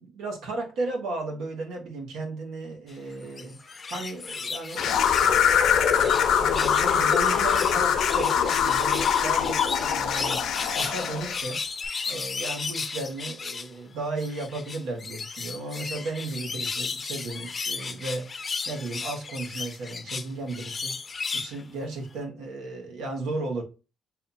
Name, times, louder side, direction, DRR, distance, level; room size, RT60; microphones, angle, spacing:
voice 1, 0.0-3.6 3.9-5.5 5.8-10.4 10.8-11.6 12.1-18.3 18.6-21.0 21.3-23.6, right 2 dB, 85° right, 1.5 m, -34 dB
sound 1, 3.2-6.3 6.5-13.7 14.2-21.6 22.1-22.2, left 4 dB, 35° left, 0.5 m, -35 dB
sound 2, 4.8-11.4, left 8 dB, 80° left, 0.7 m, -23 dB
6.4 x 2.8 x 2.7 m
cardioid pair, 90°, 0 cm